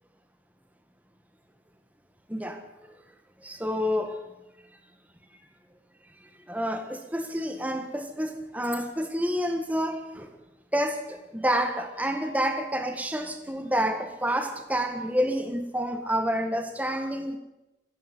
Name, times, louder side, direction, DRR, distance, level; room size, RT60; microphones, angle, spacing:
voice 1, 2.3-2.6 3.4-4.2 6.5-10.3 10.7-17.4, equal, 10° right, 6 dB, 1.7 m, -28 dB
20.0 x 15.5 x 9.5 m, 0.98 s
head